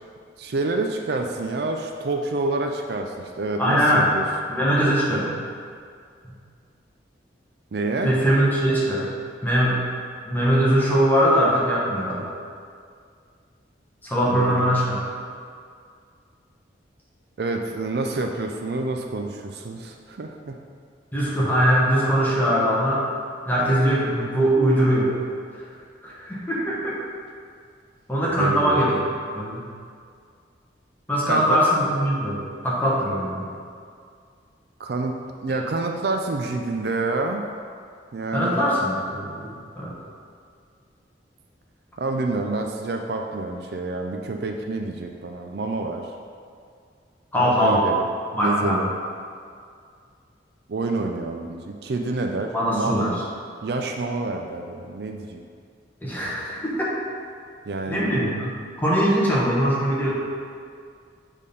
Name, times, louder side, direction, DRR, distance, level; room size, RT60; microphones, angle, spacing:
voice 1, 0.4-4.2 7.7-8.1 14.3-14.7 17.4-20.6 28.4-28.9 31.3-31.6 34.8-35.1 35.4-37.4 38.1-38.6 42.0-46.1 47.4-48.1 48.4-48.9 50.7-53.1 53.6-55.4 57.7-58.1, right 3 dB, 60° right, 3 dB, 0.4 m, -28 dB
voice 2, 3.6-4.1 4.5-5.3 8.0-9.1 9.4-9.8 10.3-12.3 14.0-15.0 21.1-23.0 23.5-25.1 26.0-27.0 28.1-29.0 29.3-29.6 31.1-32.4 32.6-33.5 38.3-39.9 47.3-47.8 48.3-48.8 52.5-53.1 56.0-56.7 57.9-58.5 58.8-60.1, equal, 10° left, -6 dB, 1.2 m, -21 dB
6.5 x 3.6 x 5.3 m, 2.2 s
head